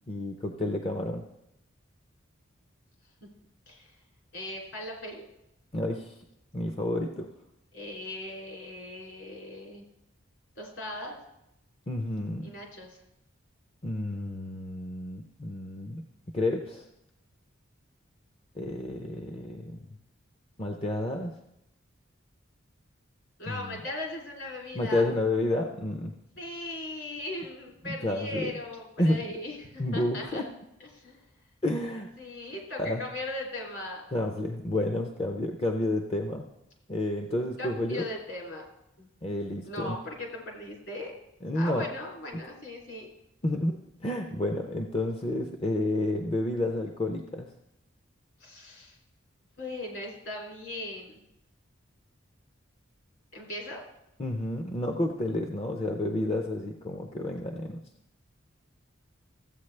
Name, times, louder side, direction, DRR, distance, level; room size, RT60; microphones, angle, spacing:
voice 1, 0.1-1.2 5.7-6.2 6.5-7.3 11.9-12.5 13.8-16.0 16.3-16.9 18.6-19.8 20.6-21.3 23.5-23.8 24.7-26.1 27.9-28.5 29.0-29.3 29.8-30.4 31.6-32.1 32.8-33.0 34.1-36.5 36.9-38.1 39.2-40.0 41.4-41.8 43.4-47.5 54.2-57.8, left 1 dB, 30° left, 3 dB, 0.5 m, -30 dB
voice 2, 4.3-5.3 7.7-9.8 10.5-11.2 12.4-13.0 23.4-25.0 26.3-30.5 30.8-31.2 32.2-34.0 37.6-38.7 39.0-39.1 39.6-41.1 41.5-43.1 48.4-49.0 49.6-51.2 53.3-53.8, left 1 dB, 60° left, -2 dB, 2.9 m, -38 dB
14.5 x 8.3 x 3.3 m, 0.86 s
head